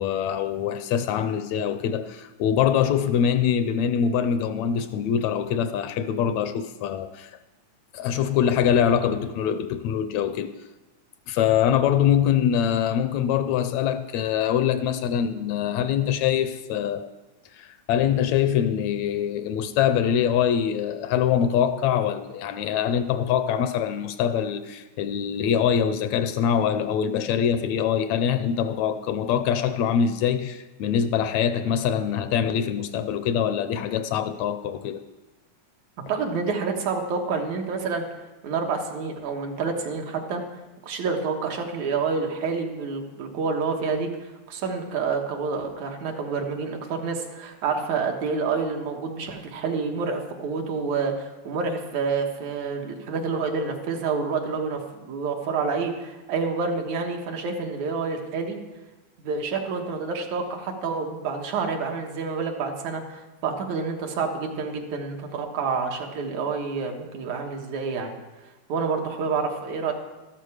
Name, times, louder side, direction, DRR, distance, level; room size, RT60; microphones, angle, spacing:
voice 1, 0.0-7.3 7.9-10.5 11.3-17.1 17.5-35.0, left 8 dB, 75° left, 1.7 m, -24 dB
voice 2, 36.1-38.0 38.4-40.4 40.8-58.6 59.2-68.2 68.7-69.9, right 5 dB, 75° right, 2.6 m, -28 dB
13.5 x 12.0 x 4.8 m
omnidirectional pair, 3.3 m